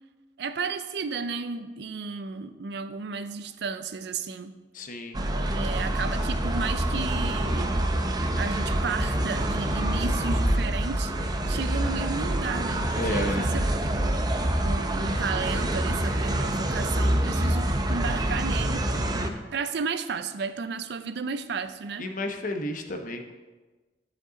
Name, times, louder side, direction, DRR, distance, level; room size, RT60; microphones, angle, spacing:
voice 1, 0.4-4.6 5.3-7.8 8.4-14.2 14.6-18.9 19.5-22.1, right 5 dB, 70° right, 11 dB, 0.5 m, -33 dB
voice 2, 4.7-5.2 13.0-13.5 22.0-23.3, left 1 dB, 50° left, 5 dB, 0.8 m, -32 dB
sound 1, 5.1-19.3, right 1 dB, 25° right, 0.6 m, -26 dB
11.0 x 5.3 x 3.8 m, 1.3 s
head